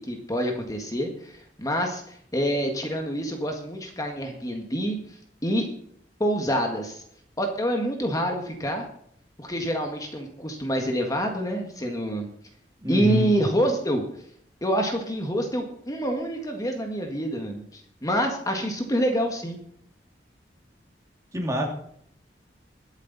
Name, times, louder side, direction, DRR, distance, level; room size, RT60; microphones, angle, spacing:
voice 1, 0.0-5.0 5.4-5.7 6.2-7.0 7.4-8.9 9.4-12.3 12.9-14.0 14.6-19.6, equal, 20° left, 3 dB, 1.7 m, -27 dB
voice 2, 12.8-13.3 21.3-21.7, equal, 20° right, 1 dB, 2.4 m, -25 dB
21.0 x 8.2 x 4.1 m, 0.66 s
head